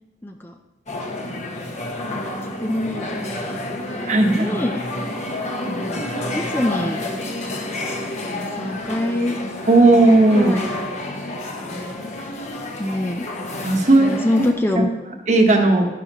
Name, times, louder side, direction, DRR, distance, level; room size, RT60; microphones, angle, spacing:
voice 1, 0.2-0.5 1.2-1.8 2.4-3.4 3.7-4.8 5.6-7.0 8.3-9.4 10.3-10.7 11.7-12.3 12.8-13.2 14.0-15.1, left 1 dB, 10° left, 3 dB, 0.5 m, -26 dB
sound 1, 0.9-14.5, left 1 dB, 40° left, 1.2 m, -29 dB
voice 2, 4.1-4.6 9.7-10.5 13.6-14.1 14.8-14.9 15.3-15.9, right 2 dB, 40° right, 3 dB, 1.2 m, -15 dB
11.5 x 10.5 x 3.0 m, 1.1 s
head